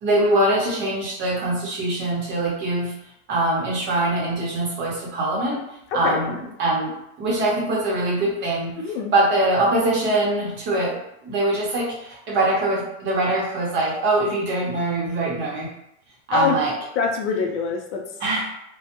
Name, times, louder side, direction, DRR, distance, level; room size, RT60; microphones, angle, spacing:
voice 1, 0.0-2.9 3.3-5.6 5.9-6.9 7.2-8.7 9.1-11.0 11.2-15.7 16.3-16.7 18.2-18.6, right 2 dB, 30° right, -4 dB, 0.8 m, -23 dB
voice 2, 6.0-6.4 8.8-9.1 16.3-16.6 17.0-18.0, left 5 dB, 65° left, 2 dB, 0.6 m, -24 dB
2.1 x 2.1 x 2.9 m, 0.80 s
supercardioid pair, 140°, 37 cm